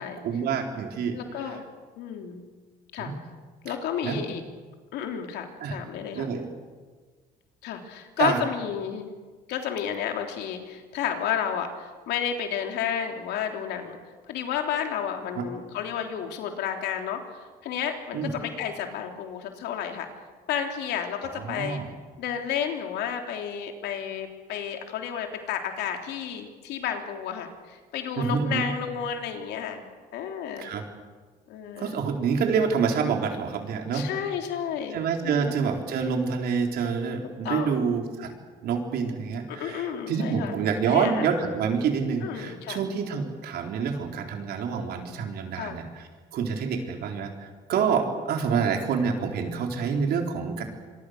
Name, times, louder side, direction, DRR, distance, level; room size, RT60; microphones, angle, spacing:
voice 1, 0.2-1.2 3.0-3.2 4.0-4.2 5.6-5.7 6.1-6.5 8.2-8.4 15.4-15.5 18.1-18.3 21.4-21.9 28.2-28.7 30.6-30.8 31.8-34.1 34.9-38.3 38.6-45.8 46.3-50.6, right 6 dB, 70° right, 3 dB, 4.3 m, -27 dB
voice 2, 1.1-1.6 2.0-2.4 2.9-3.1 3.6-4.4 4.9-6.3 7.6-9.1 9.5-14.0 14.3-20.1 20.5-21.8 22.2-29.8 30.1-30.7 31.5-32.0 33.9-35.6 37.4-37.9 39.5-40.6 40.9-41.5 42.2-42.8 45.5-45.8, left 8 dB, 85° left, 4 dB, 3.3 m, -31 dB
26.0 x 23.5 x 6.7 m, 1.4 s
cardioid pair, 110°, 17 cm